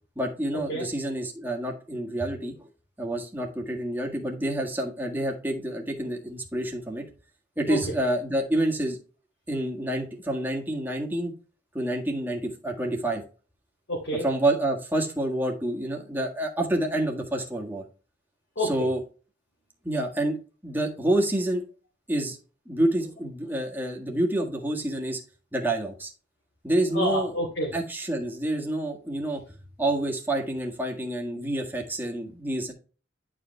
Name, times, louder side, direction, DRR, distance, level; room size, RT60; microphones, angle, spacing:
voice 1, 0.2-2.7 3.0-7.0 7.6-9.0 9.5-11.3 11.7-13.2 14.2-17.8 18.7-19.0 19.8-20.4 20.6-21.6 22.1-22.4 22.7-25.2 25.5-26.1 26.6-27.3 27.7-29.4 29.8-32.7, right 1 dB, 10° right, 0 dB, 1.6 m, -28 dB
voice 2, 13.9-14.2 18.6-18.9 26.9-27.7, equal, 75° left, -2 dB, 2.4 m, -28 dB
10.5 x 5.0 x 3.2 m, 0.36 s
head